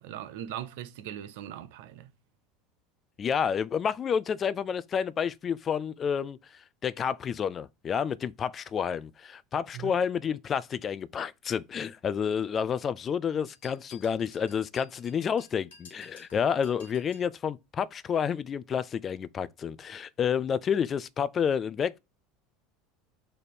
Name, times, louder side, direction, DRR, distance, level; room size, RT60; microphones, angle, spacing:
voice 1, 0.0-2.1 9.7-9.9, right 11 dB, 70° right, 0.6 m, -40 dB
voice 2, 3.2-6.4 6.8-22.0, left 7 dB, 35° left, 0.3 m, -29 dB
sound 1, 13.5-17.3, left 4 dB, 85° left, 1.5 m, -54 dB
3.3 x 2.6 x 4.2 m
hypercardioid pair, 80°, 0 cm